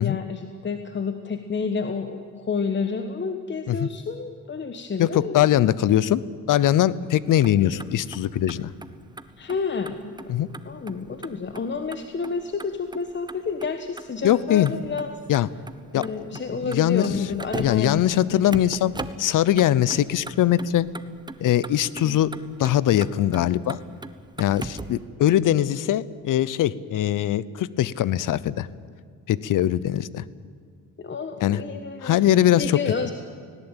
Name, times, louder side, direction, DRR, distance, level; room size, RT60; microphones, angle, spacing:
voice 1, 0.0-5.4 7.6-7.8 9.4-10.1 10.6-15.2 15.9-18.0 18.3-18.4 31.0-32.2 32.6-33.1, left 5 dB, 35° left, 7 dB, 1.4 m, -30 dB
voice 2, 5.0-6.2 6.5-8.7 10.3-10.5 14.2-14.7 15.3-15.5 15.9-16.0 16.6-17.1 17.6-18.9 19.2-20.9 21.4-23.8 24.4-28.7 29.3-30.2 31.4-31.6 32.0-32.8, left 12 dB, 65° left, 19 dB, 0.8 m, -21 dB
Motor vehicle (road), 7.3-25.1, right 2 dB, 15° right, 1.0 m, -41 dB
18.5 x 18.0 x 9.1 m, 2.1 s
cardioid pair, 90°, 34 cm